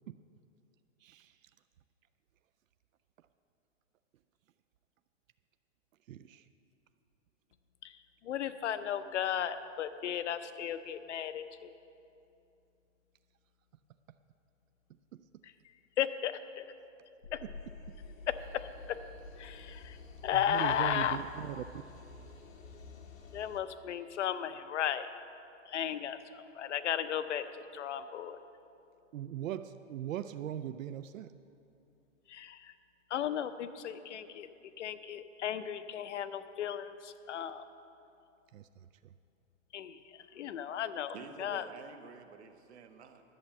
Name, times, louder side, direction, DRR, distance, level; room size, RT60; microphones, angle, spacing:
voice 1, 1.0-1.4 6.1-6.5 15.1-15.2 17.4-17.5 20.3-21.6 29.1-31.3 38.5-38.9, right 10 dB, 80° right, 11 dB, 0.5 m, -40 dB
voice 2, 8.2-11.8 15.4-15.5 16.0-16.7 17.3-17.4 18.3-19.0 19.4-20.0 20.2-21.2 23.3-25.1 25.7-28.4 32.3-32.7 33.1-34.5 34.8-37.6 39.7-41.6, left 9 dB, 65° left, 12 dB, 0.7 m, -35 dB
sound 1, 17.2-23.6, left 3 dB, 90° left, 1.4 m, -49 dB
voice 3, 40.2-40.8 41.1-43.2, right 5 dB, 55° right, 8 dB, 0.9 m, -51 dB
11.0 x 7.7 x 7.1 m, 2.7 s
hypercardioid pair, 175°, 39 cm